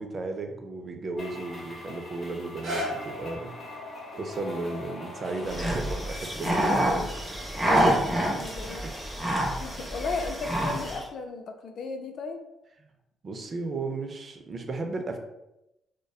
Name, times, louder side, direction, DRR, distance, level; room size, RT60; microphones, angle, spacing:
voice 1, 0.0-3.5 4.2-7.1 7.6-8.0 8.8-8.9 12.8-12.9 13.2-15.2, right 3 dB, 45° right, 4 dB, 0.4 m, -34 dB
sound 1, 1.2-6.1, left 2 dB, 40° left, 0.8 m, -42 dB
sound 2, 2.4-8.5 9.1-9.2, equal, 85° right, 0.7 m, -40 dB
sound 3, 5.5-11.0, right 1 dB, 5° right, 0.6 m, -27 dB
voice 2, 6.6-7.1 7.7-8.8 9.6-12.4, left 4 dB, 65° left, 6 dB, 0.3 m, -36 dB
2.6 x 2.1 x 2.2 m, 0.90 s
cardioid pair, 90°, 0 cm